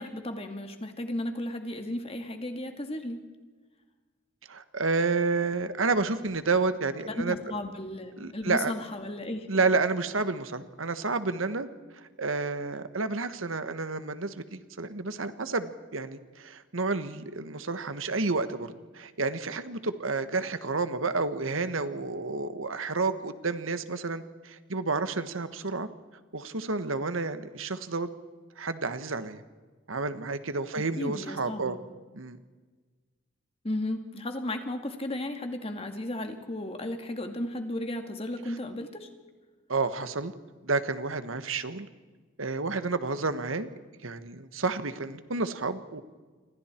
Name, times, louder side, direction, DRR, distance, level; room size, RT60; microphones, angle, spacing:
voice 1, 0.0-3.2 7.0-9.6 30.7-31.8 33.6-39.1, left 1 dB, 30° left, 5 dB, 2.2 m, -34 dB
voice 2, 4.5-7.3 8.2-8.7 9.5-11.7 12.2-25.9 26.3-28.1 28.6-29.4 29.9-31.8 32.1-32.4 39.7-40.3 40.6-41.9 42.4-43.7 44.0-46.0, right 3 dB, 85° right, 11 dB, 1.4 m, -30 dB
28.5 x 25.0 x 4.5 m, 1.4 s
head